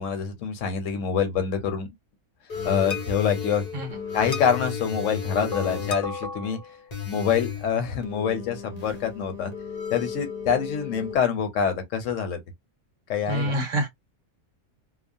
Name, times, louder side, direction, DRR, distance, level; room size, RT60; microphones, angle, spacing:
voice 1, 0.0-1.9 2.6-3.6 4.1-6.6 7.1-9.5 9.9-12.4 13.1-13.6, left 7 dB, 65° left, 1.0 m, -26 dB
sound 1, 2.5-11.1, left 6 dB, 40° left, 0.6 m, -33 dB
voice 2, 13.3-13.9, right 1 dB, 60° right, 1.4 m, -26 dB
2.9 x 2.1 x 2.5 m
omnidirectional pair, 1.5 m